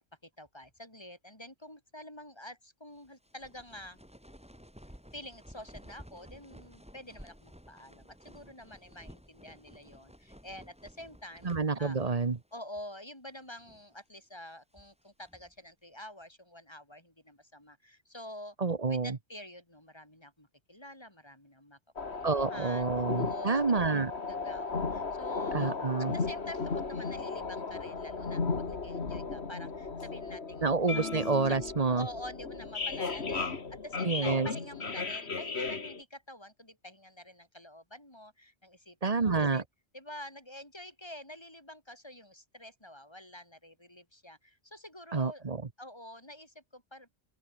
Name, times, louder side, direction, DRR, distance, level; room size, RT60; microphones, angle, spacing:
voice 1, 0.2-4.0 5.1-11.5 11.8-12.0 12.5-18.6 18.9-21.8 22.1-22.9 23.2-23.9 24.3-30.7 30.9-31.0 31.5-31.6 32.0-39.6 39.9-45.5 45.8-47.3, left 1 dB, 20° left, 4.9 m, -48 dB
sound 1, 3.0-12.5 12.7-12.9 13.5-13.9 14.5-15.6, equal, 5° right, 6.5 m, -54 dB
voice 2, 11.4-12.4 18.6-19.2 22.2-24.1 25.5-26.1 30.6-32.1 34.0-34.5 39.0-39.6 45.1-45.6, right 4 dB, 35° right, 1.1 m, -28 dB
sound 2, 22.0-36.0, left 4 dB, 65° left, 2.3 m, -35 dB
open air
omnidirectional pair, 1.2 m